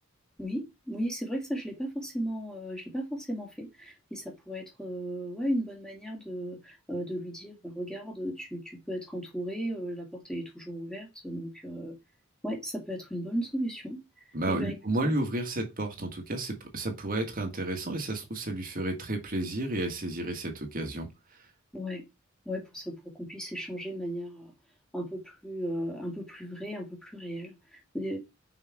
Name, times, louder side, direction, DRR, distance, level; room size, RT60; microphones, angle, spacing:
voice 1, 0.4-11.9 12.4-15.1 21.7-22.0 22.5-24.5 24.9-28.2, equal, 5° left, 2.3 m, -36 dB
voice 2, 14.3-21.1, right 1 dB, 45° right, 1.8 m, -32 dB
6.0 x 5.5 x 4.8 m
head